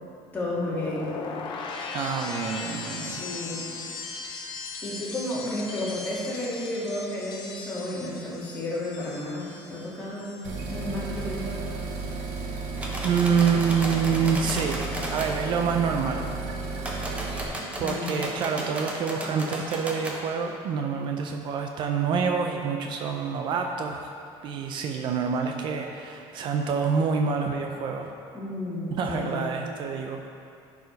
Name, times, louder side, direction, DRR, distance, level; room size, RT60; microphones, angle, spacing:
voice 1, 0.3-1.1 2.9-3.7 4.8-11.7 17.8-18.3 28.3-29.4, left 1 dB, 15° left, -8 dB, 2.2 m, -32 dB
sound 1, 0.6-10.7 10.9-11.4, left 4 dB, 50° left, 0.9 m, -38 dB
voice 2, 1.9-3.2 13.0-16.3 17.8-24.1 24.4-28.1 28.9-30.2, right 6 dB, 50° right, 3 dB, 0.5 m, -27 dB
sound 2, 10.4-17.4, right 4 dB, 85° right, 1.3 m, -33 dB
sound 3, 12.8-15.3 16.8-20.2, right 1 dB, 10° right, 1.0 m, -34 dB
10.5 x 4.9 x 5.2 m, 2.5 s
cardioid pair, 155°, 11 cm